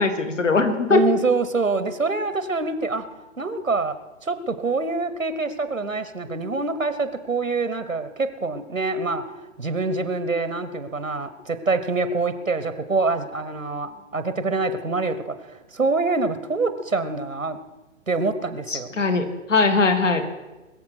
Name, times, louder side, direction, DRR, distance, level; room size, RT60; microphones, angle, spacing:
voice 1, 0.0-1.0 18.7-20.2, left 3 dB, 65° left, 8 dB, 2.0 m, -20 dB
voice 2, 0.9-3.0 3.4-3.9 4.2-9.2 9.6-17.6 18.1-19.0, right 3 dB, 85° right, 12 dB, 1.2 m, -25 dB
21.5 x 7.3 x 6.0 m, 1.1 s
figure-of-eight pair, 130°, 39 cm